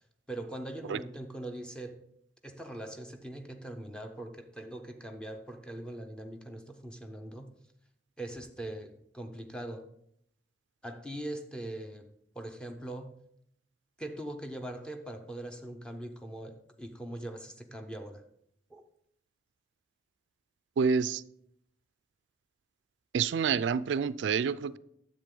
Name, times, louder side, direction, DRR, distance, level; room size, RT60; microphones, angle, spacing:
voice 1, 0.3-2.0 2.4-7.5 8.2-9.9 10.8-13.2 14.0-18.3 18.7-18.8, right 1 dB, 5° left, 0.7 m, -41 dB
voice 2, 20.8-21.2 23.1-24.8, right 6 dB, 85° right, 0.3 m, -28 dB
10.0 x 7.5 x 3.8 m
head